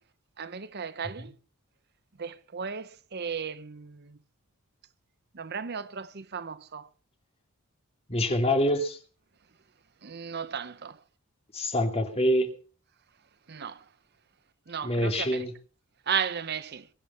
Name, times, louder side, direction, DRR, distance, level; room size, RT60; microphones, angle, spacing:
voice 1, 0.4-1.3 2.2-4.0 5.4-6.9 10.0-10.9 13.5-13.8 14.7-15.3 16.1-16.8, right 7 dB, 50° right, 0.7 m, -34 dB
voice 2, 8.1-9.0 11.5-12.5 14.8-15.5, equal, 25° left, 2.6 m, -26 dB
22.5 x 8.9 x 5.7 m
head